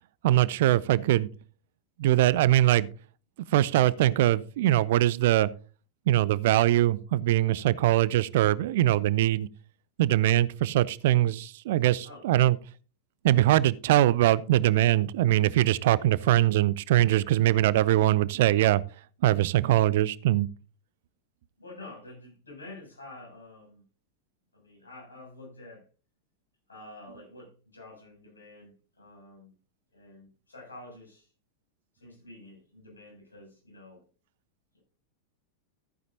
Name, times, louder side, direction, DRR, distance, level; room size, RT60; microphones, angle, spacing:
voice 1, 0.2-1.3 2.0-2.9 3.5-5.5 6.1-9.5 10.0-12.5 13.2-18.8 19.2-20.5, right 14 dB, 55° right, 0.5 m, -22 dB
voice 2, 11.8-12.3 21.6-23.8 24.5-25.9 26.7-29.5 29.9-31.3 31.9-34.0 34.7-34.8, left 2 dB, 75° left, 7.1 m, -48 dB
14.0 x 9.4 x 2.8 m
figure-of-eight pair, 90°, 0 cm